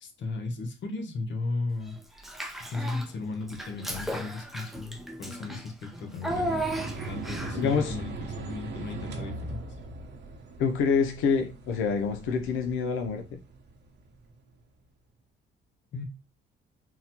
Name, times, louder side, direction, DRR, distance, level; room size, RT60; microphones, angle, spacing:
voice 1, 0.0-2.0 2.7-9.6 15.9-16.0, left 3 dB, 65° left, 0.9 m, -35 dB
Child speech kid speaking / Bathtub (filling or washing), 2.2-3.1 3.5-7.7, right 1 dB, ahead, 0.5 m, -35 dB
sound 1, 6.3-14.3, right 3 dB, 60° right, 0.9 m, -40 dB
voice 2, 7.5-7.9 10.6-13.4, left 5 dB, 90° left, 0.5 m, -26 dB
3.9 x 2.1 x 2.8 m
cardioid pair, 90°, 20 cm